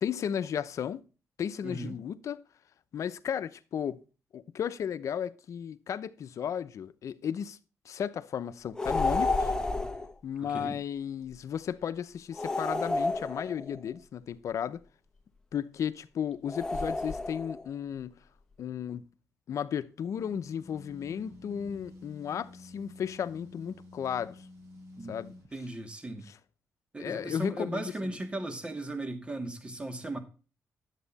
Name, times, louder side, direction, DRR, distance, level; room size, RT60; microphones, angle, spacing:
voice 1, 0.0-1.0 1.4-2.4 2.9-4.0 4.3-7.6 7.8-9.5 10.2-14.8 15.5-18.2 18.6-19.1 19.5-24.4 25.1-25.3 26.3-26.4 27.0-28.2, left 8 dB, 70° left, 0.8 m, -34 dB
voice 2, 1.6-2.0 10.4-10.8 25.0-25.1 25.5-26.3 26.9-30.2, right 1 dB, 20° right, 2.1 m, -37 dB
sound 1, 8.8-10.1 12.4-13.8 16.5-17.6, left 2 dB, 10° left, 1.2 m, -30 dB
sound 2, 20.1-25.5, left 2 dB, 65° right, 5.3 m, -50 dB
11.0 x 8.3 x 4.1 m
cardioid pair, 105°, 6 cm